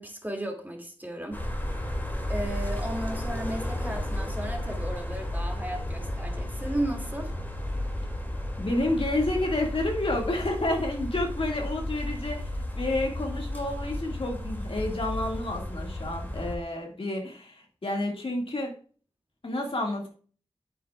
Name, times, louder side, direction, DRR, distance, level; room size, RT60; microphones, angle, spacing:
voice 1, 0.0-1.4 2.3-7.3, right 1 dB, 15° right, 2 dB, 2.3 m, -34 dB
sound 1, 1.3-16.6, left 1 dB, 15° left, 2.4 m, -33 dB
voice 2, 8.6-12.5 12.8-18.7 19.4-20.1, left 1 dB, 60° left, 1 dB, 2.0 m, -30 dB
9.1 x 8.7 x 2.4 m, 0.42 s
wide cardioid pair, 70°, 11 cm